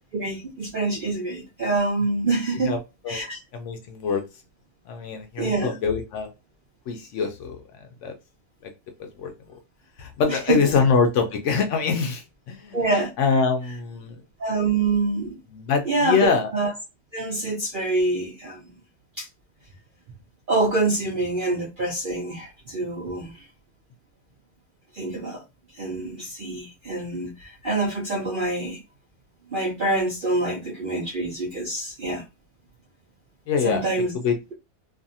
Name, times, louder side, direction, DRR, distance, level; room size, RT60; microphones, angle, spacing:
voice 1, 0.1-2.7 3.1-3.4 5.4-5.8 10.3-10.6 12.7-13.1 14.4-15.4 15.8-16.7 17.1-18.6 19.2-19.3 20.5-23.5 24.9-25.4 25.7-28.8 29.5-32.2 33.6-34.1, right 2 dB, 80° right, 0.4 m, -26 dB
voice 2, 3.5-4.2 4.9-6.3 6.9-7.6 8.0-8.1 8.6-8.7 9.0-9.3 10.0-12.9 13.2-14.2 15.5-16.5 33.5-33.8 34.1-34.4, left 5 dB, 70° left, 0.7 m, -24 dB
2.6 x 2.4 x 2.6 m
omnidirectional pair, 1.7 m